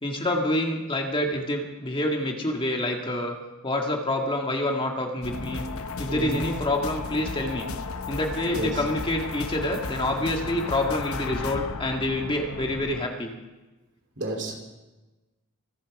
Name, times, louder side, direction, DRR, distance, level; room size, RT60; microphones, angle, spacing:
voice 1, 0.0-3.4 3.6-5.6 6.0-7.7 8.1-13.3, left 1 dB, 25° left, 1 dB, 1.9 m, -27 dB
sound 1, 5.2-13.1, left 4 dB, 70° left, 0.9 m, -34 dB
voice 2, 6.1-6.5 8.5-8.8 14.2-14.6, right 2 dB, 55° right, 2 dB, 3.1 m, -30 dB
25.0 x 8.9 x 4.9 m, 1.1 s
head